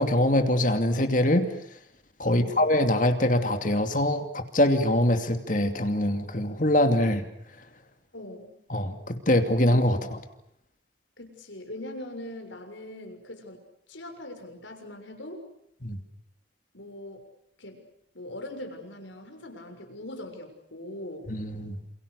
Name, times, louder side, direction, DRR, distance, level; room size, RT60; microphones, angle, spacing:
voice 1, 0.0-1.5 2.2-7.2 8.7-10.2 15.8-16.0 21.3-21.8, left 1 dB, 45° left, 7 dB, 2.6 m, -23 dB
voice 2, 2.3-2.7 8.1-8.6 10.0-10.1 11.2-15.4 16.7-17.3 17.6-17.9 18.1-21.3, left 1 dB, 90° left, 5 dB, 6.8 m, -41 dB
29.0 x 28.5 x 6.8 m, 0.74 s
head